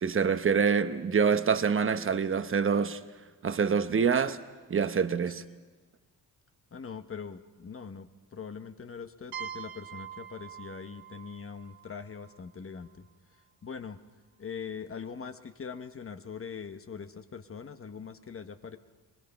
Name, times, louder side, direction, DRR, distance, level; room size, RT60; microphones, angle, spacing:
voice 1, 0.0-3.0 3.4-4.4 4.7-5.4, right 6 dB, 35° right, 0.9 m, -26 dB
voice 2, 6.7-13.1 13.6-14.0 14.4-18.8, left 6 dB, 35° left, 1.0 m, -42 dB
sound 1, 9.3-13.0, right 8 dB, 65° right, 1.0 m, -44 dB
24.0 x 20.5 x 5.7 m
cardioid pair, 100°, 38 cm